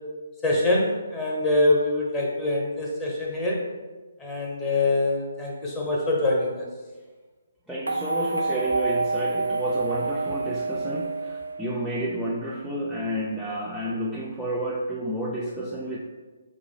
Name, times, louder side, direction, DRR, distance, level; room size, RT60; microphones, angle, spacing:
voice 1, 0.4-3.6 4.2-6.6, left 2 dB, 15° left, -3 dB, 0.8 m, -24 dB
voice 2, 7.7-16.0, right 1 dB, 5° right, -7 dB, 0.4 m, -30 dB
sound 1, 7.9-12.1, right 3 dB, 85° right, 0.3 m, -28 dB
4.9 x 2.0 x 3.6 m, 1.3 s
figure-of-eight pair, 140°, 0 cm